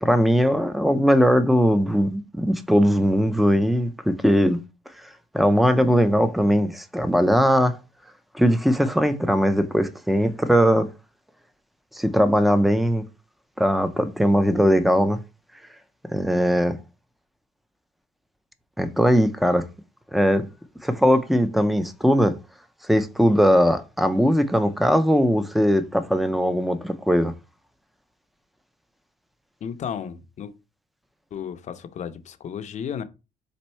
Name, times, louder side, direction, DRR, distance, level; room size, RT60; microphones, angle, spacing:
voice 1, 0.0-4.6 5.3-7.8 8.3-10.9 11.9-13.0 13.6-15.2 16.1-16.8 18.8-19.7 20.1-20.5 20.8-22.4 22.9-27.3, equal, ahead, 0.5 m, -20 dB
voice 2, 29.6-30.5 31.3-33.0, left 8 dB, 45° left, 0.6 m, -33 dB
4.3 x 2.6 x 4.3 m
cardioid pair, 110°, 17 cm